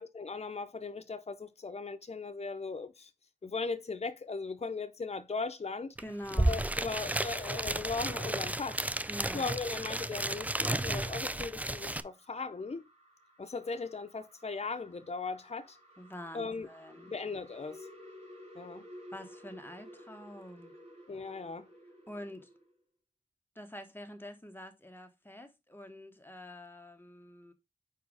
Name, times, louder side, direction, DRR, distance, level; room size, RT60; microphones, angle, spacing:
voice 1, 0.0-3.1 3.4-5.9 6.5-8.8 9.3-12.9 13.4-15.8 16.3-16.7 17.1-17.9 18.5-18.8 21.1-21.7, left 4 dB, 50° left, 0.6 m, -38 dB
voice 2, 6.0-6.6 9.1-9.5 16.0-17.1 19.1-20.8 22.1-22.5 23.5-27.5, equal, 15° left, 1.3 m, -46 dB
sound 1, 6.0-6.1 6.3-12.0, right 1 dB, 10° right, 0.3 m, -33 dB
sound 2, 11.0-22.7, equal, 45° right, 3.3 m, -55 dB
4.8 x 4.6 x 4.7 m
wide cardioid pair, 70°, 14 cm